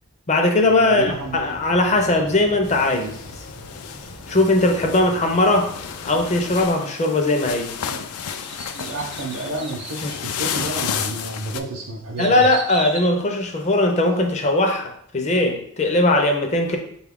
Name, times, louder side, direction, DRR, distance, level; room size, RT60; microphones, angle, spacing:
voice 1, 0.3-3.2 4.3-5.7 6.0-7.7 10.0-10.1 12.2-16.8, left 2 dB, 30° left, 4 dB, 0.5 m, -19 dB
voice 2, 0.8-1.4 7.9-8.0 8.7-12.5, right 2 dB, 70° right, -3 dB, 0.6 m, -30 dB
Motorcycle, 1.0-6.7, left 1 dB, 65° left, 0.9 m, -40 dB
sound 1, 2.6-11.6, left 8 dB, 85° left, 0.3 m, -32 dB
sound 2, 8.2-10.0 10.6-10.7 11.3-14.1 14.5-14.6, right 3 dB, 25° right, 0.4 m, -36 dB
4.3 x 2.3 x 3.5 m, 0.67 s
head